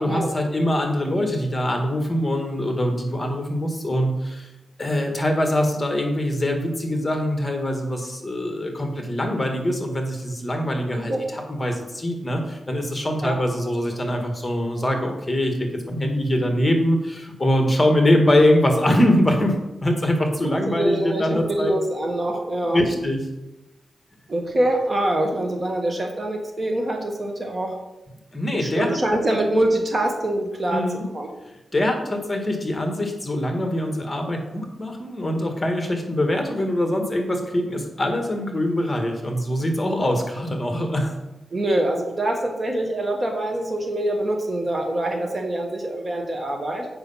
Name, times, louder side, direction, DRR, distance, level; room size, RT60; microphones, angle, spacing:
voice 1, 0.0-4.5 4.8-21.7 22.7-23.2 28.3-29.2 29.5-29.6 30.7-31.0 31.7-41.1, left 1 dB, 20° left, 3 dB, 1.7 m, -23 dB
voice 2, 20.4-22.8 24.3-27.7 28.5-30.9 31.1-31.3 41.5-46.9, right 1 dB, 35° right, 2 dB, 1.5 m, -24 dB
7.9 x 5.5 x 5.6 m, 0.96 s
cardioid pair, 95°, 0 cm